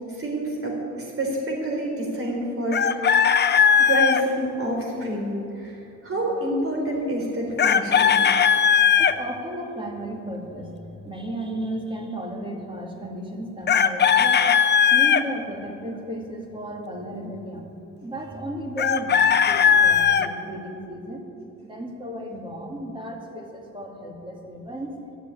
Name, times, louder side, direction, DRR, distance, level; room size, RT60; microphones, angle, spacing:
voice 1, 0.1-3.0 3.8-8.2, right 1 dB, 45° right, 0 dB, 4.0 m, -27 dB
Chicken rooster, 2.7-4.2 7.6-9.1 13.7-15.2 18.8-20.3, left 7 dB, 35° left, 0.6 m, -18 dB
voice 2, 8.5-14.5 14.9-21.3 21.6-24.9, right 1 dB, 15° right, 1 dB, 2.3 m, -34 dB
13.0 x 7.2 x 9.2 m, 2.8 s
cardioid pair, 90°, 30 cm